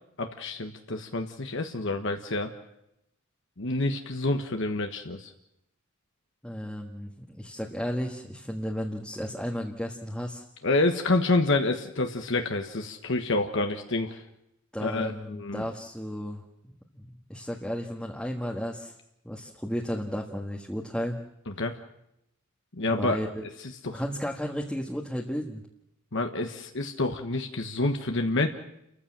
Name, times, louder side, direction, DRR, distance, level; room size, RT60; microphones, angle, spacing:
voice 1, 0.2-2.5 3.6-5.3 10.6-14.2 14.8-15.6 21.5-21.7 22.7-23.2 23.8-24.0 26.1-28.5, left 2 dB, 65° left, 5 dB, 1.4 m, -28 dB
voice 2, 6.4-10.4 14.7-18.9 19.2-21.2 22.9-23.5 23.9-25.6, equal, 5° left, 0 dB, 1.6 m, -34 dB
29.5 x 14.5 x 7.6 m, 0.84 s
head